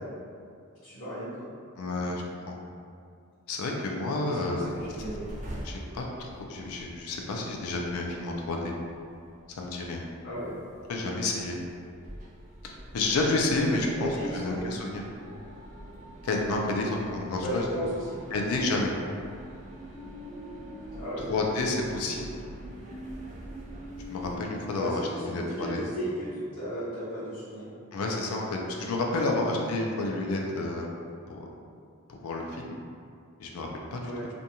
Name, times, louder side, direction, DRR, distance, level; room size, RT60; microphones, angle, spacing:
voice 1, 0.8-1.5 4.2-5.3 10.2-10.5 14.0-14.7 17.4-18.2 20.9-21.3 24.7-27.7 34.0-34.3, equal, 50° left, -14 dB, 0.8 m, -35 dB
voice 2, 1.8-2.6 3.5-4.6 5.6-8.7 9.6-10.0 10.9-11.6 12.6-15.0 16.2-17.6 18.3-18.9 21.3-22.3 24.1-25.0 25.3-25.8 27.9-30.9 31.3-31.4 32.1-32.8 33.4-34.1, left 2 dB, 90° left, 0 dB, 0.4 m, -30 dB
sound 1, 4.6-24.4, right 1 dB, 35° right, 0.4 m, -44 dB
2.5 x 2.2 x 2.8 m, 2.3 s
head